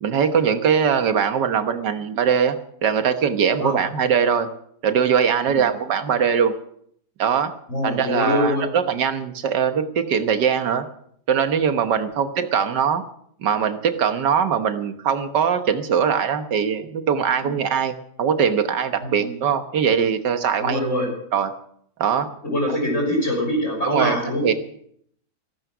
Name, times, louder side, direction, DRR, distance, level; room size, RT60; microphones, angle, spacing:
voice 1, 0.0-2.6 2.8-4.5 4.8-6.5 7.2-7.5 7.8-10.9 11.3-13.0 13.4-20.8 21.3-21.5 22.0-22.3 23.9-24.2 24.4-24.5, right 7 dB, 85° right, 9 dB, 1.8 m, -21 dB
voice 2, 7.7-8.6 17.4-17.5 19.0-19.3 20.6-21.1 22.4-24.6, left 1 dB, 45° left, 0 dB, 6.5 m, -24 dB
15.0 x 15.0 x 6.1 m, 0.66 s
omnidirectional pair, 1.8 m